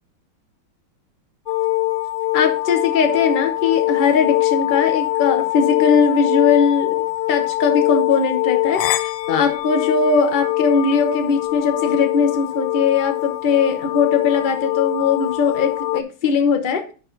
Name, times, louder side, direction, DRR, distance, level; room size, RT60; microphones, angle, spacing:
sound 1, 1.5-16.0, left 19 dB, 75° left, 1.1 m, -22 dB
voice 1, 2.3-16.9, left 5 dB, 55° left, 6 dB, 0.5 m, -20 dB
10.5 x 4.6 x 3.9 m, 0.37 s
omnidirectional pair, 2.2 m